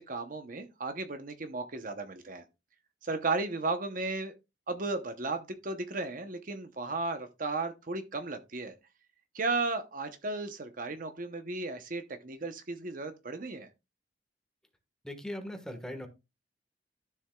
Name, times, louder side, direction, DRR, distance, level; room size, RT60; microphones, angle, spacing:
voice 1, 0.0-2.4 3.0-4.3 4.7-8.7 9.3-13.7, right 3 dB, 45° right, 0.8 m, -35 dB
voice 2, 15.0-16.1, left 1 dB, 5° left, 1.4 m, -39 dB
12.5 x 7.0 x 2.3 m
head